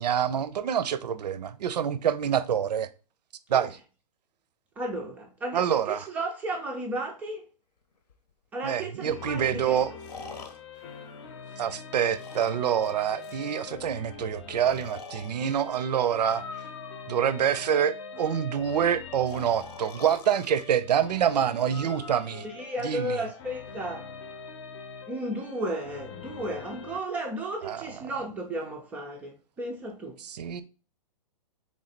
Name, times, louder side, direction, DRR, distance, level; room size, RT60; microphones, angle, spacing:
voice 1, 0.0-2.9 3.5-3.8 5.5-6.1 8.6-9.9 11.6-16.4 17.1-22.5 22.8-23.2 27.6-27.9 30.2-30.6, right 9 dB, 85° right, 0.5 m, -26 dB
voice 2, 4.8-7.4 8.5-9.8 22.4-24.1 25.1-30.2, right 1 dB, 5° right, 0.3 m, -34 dB
Breathing, 8.1-8.2 10.0-11.7 12.1-13.4 14.6-15.3 16.1-17.3 19.3-20.6 21.7-22.2, left 4 dB, 80° left, 0.9 m, -44 dB
sound 1, 9.1-27.0, left 5 dB, 45° left, 0.7 m, -43 dB
3.6 x 3.2 x 4.0 m
hypercardioid pair, 150°, 21 cm